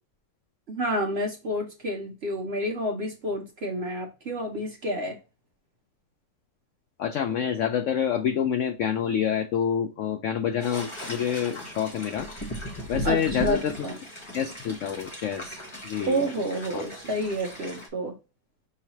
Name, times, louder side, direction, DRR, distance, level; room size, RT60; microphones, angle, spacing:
voice 1, 0.7-5.2 13.0-14.0 16.1-18.1, equal, 55° right, 0.7 m, -29 dB
voice 2, 7.0-12.3 12.9-13.9 14.3-16.2 16.7-16.8, left 8 dB, 85° left, 0.6 m, -27 dB
sound 1, 10.6-17.9, equal, 20° left, 0.9 m, -38 dB
5.6 x 3.1 x 2.8 m
omnidirectional pair, 1.8 m